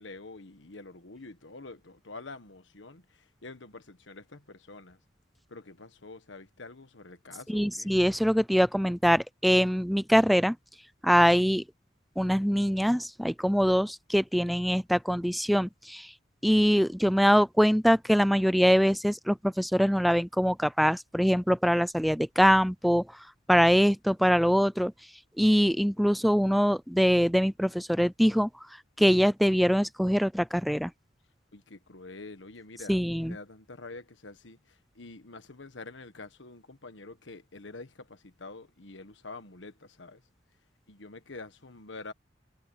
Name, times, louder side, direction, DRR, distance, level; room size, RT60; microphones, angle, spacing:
voice 1, 0.0-5.0 5.5-7.9 31.5-40.2 40.9-42.1, left 3 dB, 75° left, 1.5 m, -46 dB
voice 2, 7.5-10.6 11.0-11.6 12.2-16.1 16.4-23.1 23.5-24.9 25.4-28.5 29.0-30.9 32.9-33.4, equal, ahead, 0.3 m, -23 dB
head